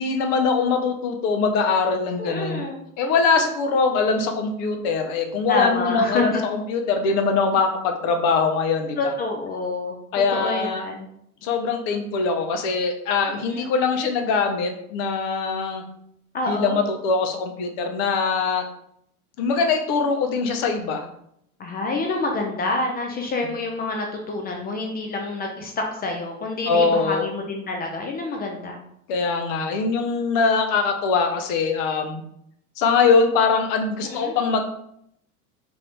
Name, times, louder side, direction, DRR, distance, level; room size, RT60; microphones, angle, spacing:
voice 1, 0.0-2.6 3.0-9.1 10.1-10.9 11.4-15.8 16.5-18.7 19.4-21.1 26.7-27.3 29.1-32.2 32.8-34.6, left 4 dB, 55° left, 5 dB, 0.7 m, -22 dB
voice 2, 2.2-2.8 5.5-6.5 9.0-10.0 10.3-11.1 13.3-13.7 16.3-16.8 21.6-28.8 34.0-34.3, left 2 dB, 20° left, 2 dB, 0.3 m, -27 dB
2.6 x 2.6 x 3.3 m, 0.74 s
hypercardioid pair, 90°, 45 cm